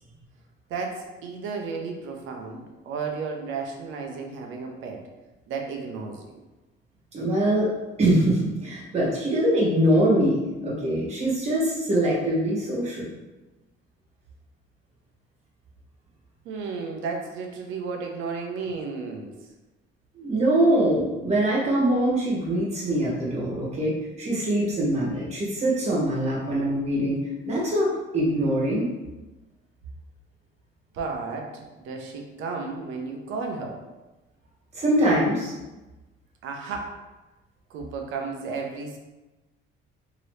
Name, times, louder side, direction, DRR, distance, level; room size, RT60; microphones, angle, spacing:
voice 1, 0.7-5.1 5.5-6.4 16.4-19.3 30.9-33.8 36.4-37.0 37.7-39.0, right 4 dB, 70° right, 2 dB, 0.6 m, -33 dB
voice 2, 7.1-7.7 8.0-13.2 20.1-27.2 27.4-28.9 34.7-35.5, right 1 dB, 30° right, -5 dB, 1.2 m, -23 dB
2.9 x 2.8 x 3.2 m, 1.1 s
cardioid pair, 135°, 21 cm